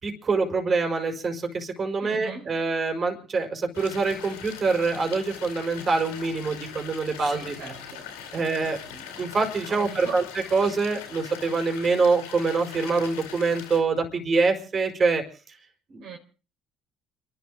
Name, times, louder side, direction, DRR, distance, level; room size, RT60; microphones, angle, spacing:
voice 1, 0.0-7.5 8.3-10.2 10.5-15.2 15.9-16.0, right 4 dB, 40° right, 5.2 m, -25 dB
voice 2, 2.0-2.6 7.2-8.7 9.7-10.6 16.0-16.2, right 5 dB, 65° right, 4.6 m, -41 dB
sound 1, 3.7-13.8, left 7 dB, 90° left, 4.0 m, -41 dB
29.5 x 12.5 x 3.9 m
hypercardioid pair, 65°, 0 cm